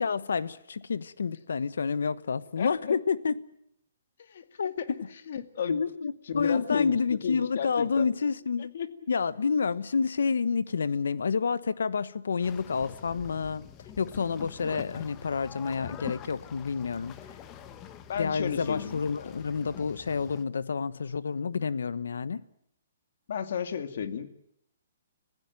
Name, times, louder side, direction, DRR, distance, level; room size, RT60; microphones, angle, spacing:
voice 1, 0.0-3.4 4.6-4.7 5.7-8.7 9.1-13.6 14.0-17.2 18.2-22.4, left 5 dB, 85° left, 1.1 m, -29 dB
voice 2, 2.6-3.0 4.3-4.9 5.3-5.8 6.3-8.1 8.7-8.9 18.1-19.0 23.3-24.3, left 8 dB, 60° left, 2.1 m, -33 dB
sound 1, 12.4-20.4, left 10 dB, 20° left, 1.2 m, -45 dB
26.5 x 16.0 x 9.2 m
hypercardioid pair, 165°, 0 cm